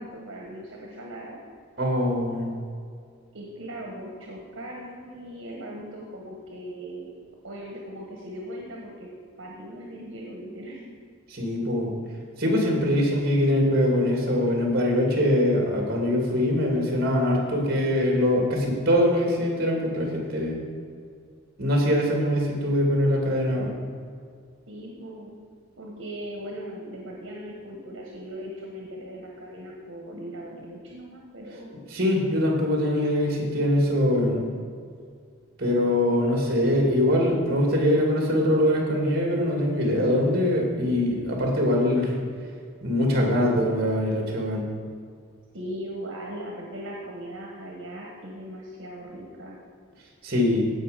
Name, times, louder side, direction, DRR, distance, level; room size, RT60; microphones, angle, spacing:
voice 1, 0.0-1.4 3.3-7.1 7.4-9.1 9.4-10.9 24.7-25.4 25.8-31.7 45.5-49.6, equal, 75° right, -1 dB, 1.4 m, -39 dB
voice 2, 1.8-2.5 11.3-11.9 12.4-20.6 21.6-23.7 31.9-34.4 35.6-42.1 42.8-44.6 50.2-50.7, left 1 dB, 50° right, 0 dB, 2.5 m, -23 dB
16.0 x 5.5 x 5.1 m, 2.1 s
head